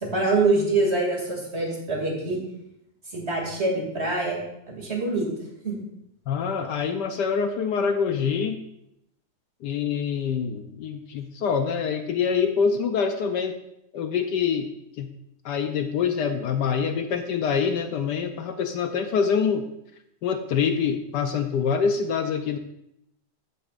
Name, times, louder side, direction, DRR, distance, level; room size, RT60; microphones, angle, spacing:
voice 1, 0.0-2.4 3.1-4.4 4.7-5.3 5.6-5.8, right 3 dB, 35° right, -2 dB, 2.8 m, -25 dB
voice 2, 6.3-8.6 9.6-13.6 13.9-14.7 15.0-15.1 15.4-19.6 20.2-22.6, left 6 dB, 70° left, 7 dB, 1.2 m, -25 dB
13.5 x 9.3 x 2.5 m, 0.79 s
omnidirectional pair, 2.0 m